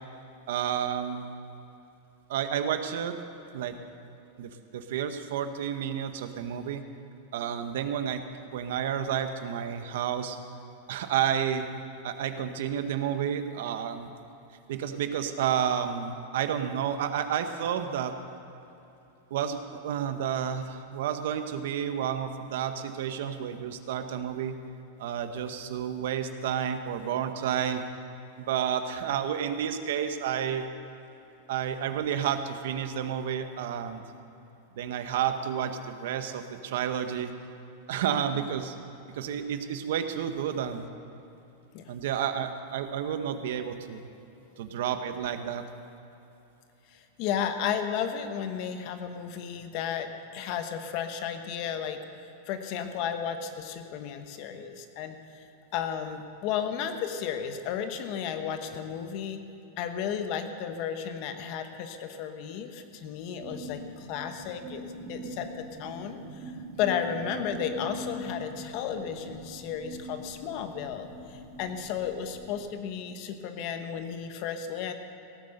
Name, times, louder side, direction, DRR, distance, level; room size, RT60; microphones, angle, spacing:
voice 1, 0.5-1.2 2.3-3.2 3.5-3.8 4.4-6.8 7.3-8.2 8.5-10.4 10.9-11.7 12.0-14.1 14.7-18.1 19.3-24.6 25.0-27.8 28.4-30.6 31.5-34.0 34.7-37.3 37.9-38.7 39.1-40.9 41.9-44.0 44.6-45.7, right 9 dB, 65° right, 8 dB, 1.0 m, -30 dB
voice 2, 46.9-52.0 52.5-55.4 55.7-59.4 59.8-66.5 66.8-74.9, left 8 dB, 45° left, 7 dB, 1.1 m, -33 dB
sound 1, 63.4-72.6, right 1 dB, 35° right, 2.5 m, -42 dB
17.0 x 9.3 x 6.6 m, 2.9 s
supercardioid pair, 155°, 0 cm